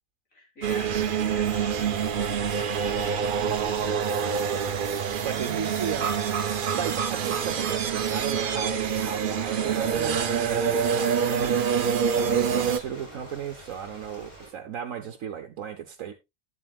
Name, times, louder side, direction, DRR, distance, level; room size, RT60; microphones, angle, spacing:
voice 1, 0.3-4.0 12.7-12.8, left 2 dB, 85° left, 3.8 m, -45 dB
sound 1, 0.6-12.8, right 7 dB, 50° right, 0.8 m, -26 dB
Ocean, 4.6-14.5, equal, 30° left, 3.4 m, -47 dB
voice 2, 5.2-6.4 6.7-11.6 12.1-16.1, right 8 dB, 75° right, 1.3 m, -35 dB
11.5 x 8.2 x 2.4 m
omnidirectional pair, 1.4 m